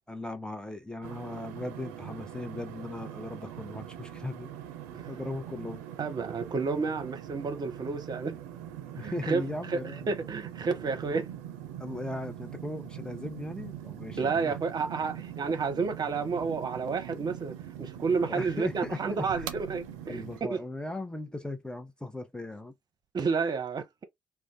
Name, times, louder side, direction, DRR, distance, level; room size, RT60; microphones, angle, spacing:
voice 1, 0.1-4.5 5.1-5.8 9.0-10.1 11.0-11.2 11.8-14.6 18.3-19.5 20.1-22.7, left 2 dB, 10° left, 0.8 m, -38 dB
sound 1, 1.0-20.4, right 10 dB, 90° right, 0.4 m, -42 dB
voice 2, 6.0-8.4 8.9-9.4 9.7-9.8 10.1-11.3 14.2-20.6 23.1-24.0, right 5 dB, 50° right, 0.8 m, -31 dB
2.5 x 2.2 x 3.6 m
hypercardioid pair, 50°, 9 cm